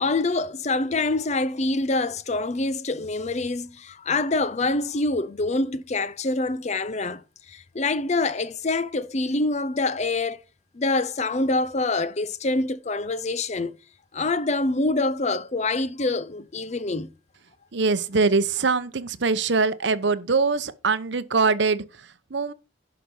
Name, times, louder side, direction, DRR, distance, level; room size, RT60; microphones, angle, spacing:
voice 1, 0.0-7.2 7.5-10.4 10.7-13.7 14.1-17.1, left 2 dB, 35° left, 0.6 m, -25 dB
voice 2, 17.7-21.8 22.3-22.5, right 4 dB, 70° right, 0.8 m, -23 dB
11.0 x 5.9 x 5.4 m
head